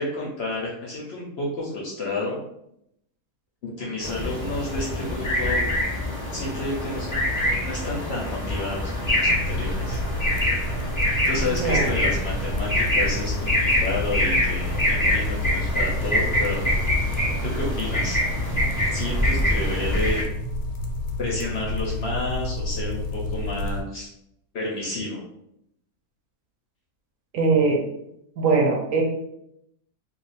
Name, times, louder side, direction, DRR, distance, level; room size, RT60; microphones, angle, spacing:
voice 1, 0.0-2.4 3.6-5.6 6.3-7.2 7.6-10.0 11.2-16.7 17.4-18.2 18.9-20.2 21.2-24.1 24.5-25.2, left 2 dB, 55° left, -3 dB, 0.7 m, -30 dB
sound 1, 4.0-20.2, left 1 dB, 15° left, 0.8 m, -25 dB
sound 2, 9.3-23.8, left 1 dB, 85° left, 1.1 m, -31 dB
voice 2, 11.4-11.9 27.3-27.8 28.4-29.0, right 4 dB, 70° right, 1 dB, 0.9 m, -21 dB
2.4 x 2.4 x 4.0 m, 0.78 s
omnidirectional pair, 1.5 m